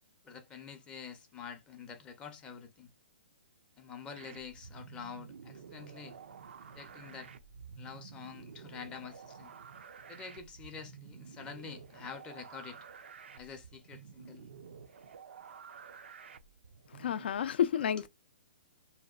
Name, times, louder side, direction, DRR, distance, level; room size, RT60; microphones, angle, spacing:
voice 1, 0.2-2.9 3.8-6.2 6.8-7.3 7.8-9.5 10.1-12.8 13.4-14.5 18.0-18.1, left 6 dB, 15° left, 0.5 m, -47 dB
sound 1, 4.1-17.3, right 6 dB, 75° right, 0.4 m, -51 dB
voice 2, 16.9-18.1, left 9 dB, 65° left, 0.4 m, -30 dB
2.7 x 2.1 x 2.3 m
hypercardioid pair, 150°, 6 cm